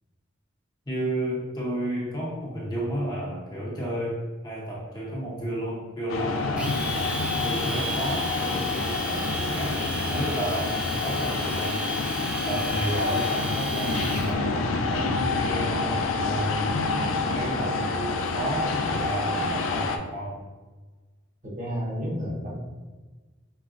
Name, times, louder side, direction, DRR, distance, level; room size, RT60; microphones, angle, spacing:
voice 1, 0.9-4.2 4.4-9.8 10.1-11.8 12.5-16.8 17.1-20.4, right 1 dB, 20° left, -5 dB, 0.7 m, -32 dB
sound 1, 6.1-20.0, left 3 dB, 85° left, 0.4 m, -27 dB
Domestic sounds home sounds, 6.6-14.3, equal, 5° right, 0.4 m, -33 dB
voice 2, 21.4-22.5, equal, 40° right, -3 dB, 0.9 m, -31 dB
4.7 x 3.2 x 2.5 m, 1.3 s
head